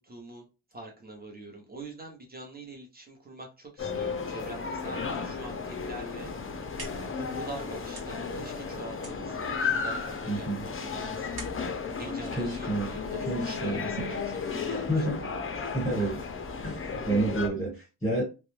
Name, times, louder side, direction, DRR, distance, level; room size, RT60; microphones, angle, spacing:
voice 1, 0.0-6.3 7.1-11.4 12.0-15.4, right 2 dB, 20° right, 0.8 m, -44 dB
sound 1, 3.8-17.5, left 5 dB, 30° left, 0.4 m, -34 dB
sound 2, 6.4-13.2, right 3 dB, 55° right, 1.0 m, -48 dB
voice 2, 10.3-10.6 12.3-12.9 13.3-13.8 14.9-15.3 15.7-16.2 16.6-18.2, right 2 dB, 5° left, 1.3 m, -29 dB
2.2 x 2.2 x 3.1 m
wide cardioid pair, 105°, 43 cm